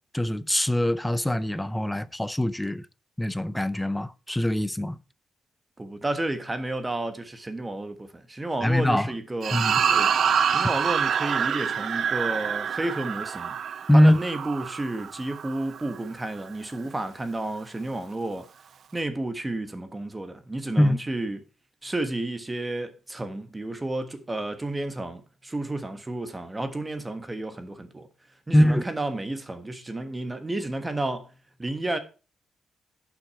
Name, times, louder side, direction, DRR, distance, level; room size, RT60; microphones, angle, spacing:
voice 1, 0.1-2.8 3.2-5.0 8.6-9.1 9.5-9.8 13.9-14.2 20.8-21.0 28.5-28.8, equal, 5° left, 0.5 m, -22 dB
voice 2, 5.8-9.6 9.9-10.1 10.5-13.6 13.9-18.5 18.9-21.4 21.8-28.1 28.5-31.3 31.6-32.0, right 2 dB, 15° right, 1.4 m, -31 dB
sound 1, 9.4-16.0, right 7 dB, 55° right, 0.5 m, -26 dB
11.5 x 6.2 x 4.7 m
cardioid pair, 145°, 0 cm